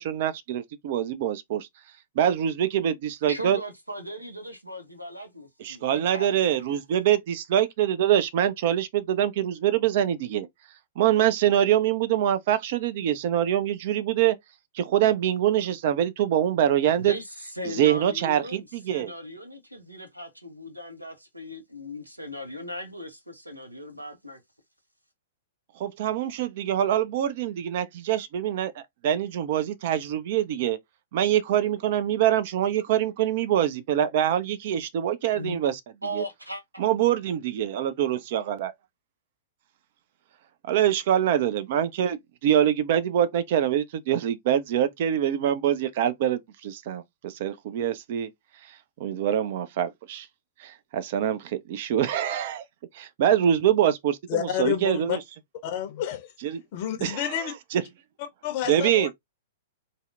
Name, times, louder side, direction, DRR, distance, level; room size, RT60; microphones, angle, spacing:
voice 1, 0.0-1.7 2.2-3.6 5.6-10.5 11.0-14.4 14.7-17.1 17.7-19.1 25.8-30.8 31.1-35.8 36.1-36.2 36.8-38.7 40.6-48.3 49.0-50.3 50.6-52.6 52.9-55.2 56.4-56.6 57.0-57.8 58.7-59.1, right 10 dB, 45° right, 0.4 m, -24 dB
voice 2, 3.3-6.8 16.9-24.4 35.3-35.6 36.0-36.8, equal, 90° right, 0.7 m, -38 dB
voice 3, 54.3-55.2 55.6-56.3 56.7-57.5 58.4-59.1, left 10 dB, 45° left, 0.6 m, -29 dB
2.6 x 2.0 x 2.4 m
figure-of-eight pair, 105°, 0 cm